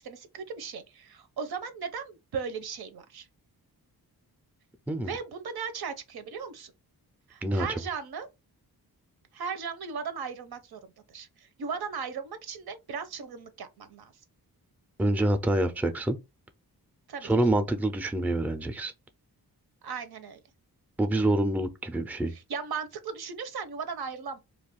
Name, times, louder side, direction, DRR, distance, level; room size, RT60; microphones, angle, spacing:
voice 1, 0.0-3.3 5.0-6.7 7.3-8.3 9.3-10.8 11.1-14.1 17.1-17.3 19.8-20.4 22.3-24.4, right 6 dB, 80° right, 0.7 m, -37 dB
voice 2, 15.0-16.2 17.2-18.9 21.0-22.3, right 1 dB, 5° right, 0.4 m, -26 dB
2.4 x 2.3 x 3.5 m
wide cardioid pair, 95°, 38 cm